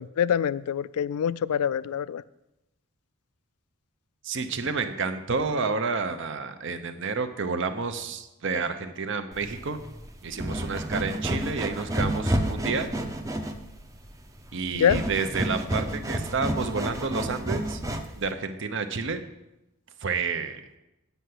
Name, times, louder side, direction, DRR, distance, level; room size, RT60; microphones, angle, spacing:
voice 1, 0.0-2.2 14.7-15.0, left 8 dB, 80° left, 18 dB, 0.3 m, -25 dB
voice 2, 4.2-9.8 10.2-12.9 14.5-17.8 18.2-19.2 20.0-20.6, right 4 dB, 55° right, 9 dB, 0.7 m, -30 dB
sound 1, 9.3-18.3, right 1 dB, 15° right, 0.6 m, -30 dB
8.1 x 5.6 x 7.8 m, 0.92 s
head